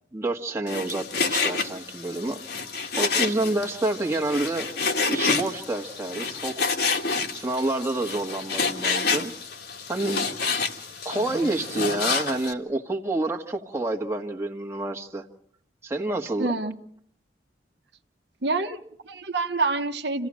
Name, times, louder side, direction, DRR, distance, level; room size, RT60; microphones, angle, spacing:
voice 1, 0.1-2.4 3.0-4.7 5.0-6.7 7.3-9.3 9.9-10.3 11.0-15.3 15.8-16.5, right 2 dB, 15° right, 0 dB, 1.5 m, -28 dB
Frying (food), 0.7-12.5, left 4 dB, 60° left, 1.9 m, -28 dB
voice 2, 16.4-16.8 18.4-20.3, right 3 dB, 70° right, 6 dB, 1.2 m, -27 dB
28.0 x 16.0 x 7.6 m, 0.66 s
head